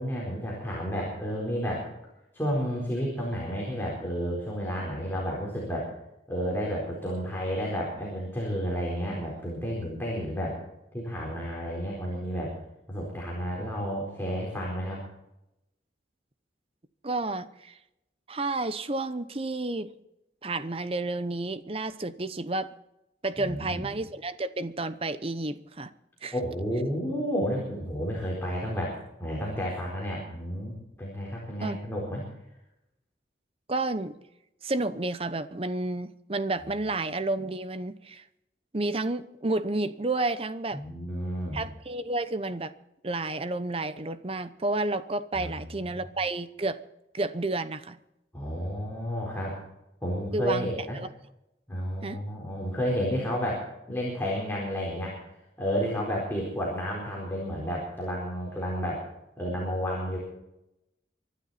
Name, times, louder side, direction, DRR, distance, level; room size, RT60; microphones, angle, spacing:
voice 1, 0.0-1.9 2.3-5.9 6.3-10.6 10.9-12.5 12.9-15.0 23.4-23.9 26.3-32.2 40.7-41.6 45.3-45.6 48.3-49.6 50.0-51.0 51.7-55.2 55.6-59.0 59.4-60.2, equal, 10° left, -4 dB, 4.2 m, -31 dB
voice 2, 17.0-17.8 18.3-19.9 20.4-22.7 23.2-25.9 26.2-26.3 31.6-31.8 33.7-34.1 34.6-38.2 38.7-40.8 41.5-42.7 43.0-46.8 47.1-48.0 50.3-51.1 52.0-52.2, right 2 dB, 30° right, 13 dB, 0.8 m, -31 dB
24.5 x 11.5 x 4.2 m, 0.87 s
head